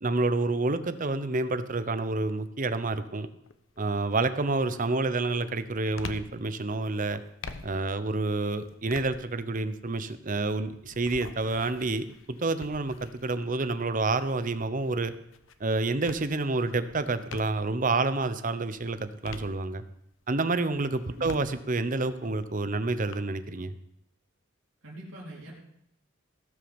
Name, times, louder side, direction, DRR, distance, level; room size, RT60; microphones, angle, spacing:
voice 1, 0.0-3.3 3.8-7.2 7.6-15.1 15.6-19.8 20.3-23.7, right 3 dB, 40° right, 12 dB, 0.8 m, -28 dB
sound 1, 3.4-3.8 4.3-17.8 18.3-20.1 20.6-23.1, left 4 dB, 80° left, 0.9 m, -47 dB
voice 2, 21.1-21.4 24.8-25.5, right 1 dB, 85° right, -4 dB, 3.5 m, -43 dB
17.0 x 6.3 x 7.1 m, 0.76 s
head